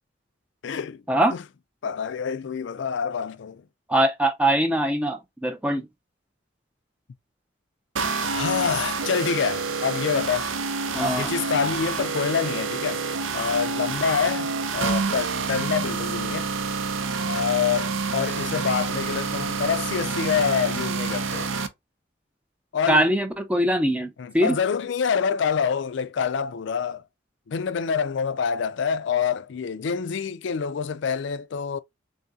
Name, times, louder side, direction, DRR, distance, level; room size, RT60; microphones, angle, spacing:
voice 1, 0.6-1.0 1.3-1.4 1.8-3.6 8.3-10.5 10.9-13.0 13.3-16.5 17.2-21.5 22.7-23.1 24.2-27.0 27.5-31.8, left 6 dB, 65° left, 0.4 m, -26 dB
voice 2, 3.9-5.9 10.9-11.3 22.9-24.5, right 1 dB, 5° right, 0.4 m, -22 dB
sound 1, 8.0-21.7, right 4 dB, 80° right, 0.6 m, -28 dB
3.7 x 2.7 x 3.5 m
head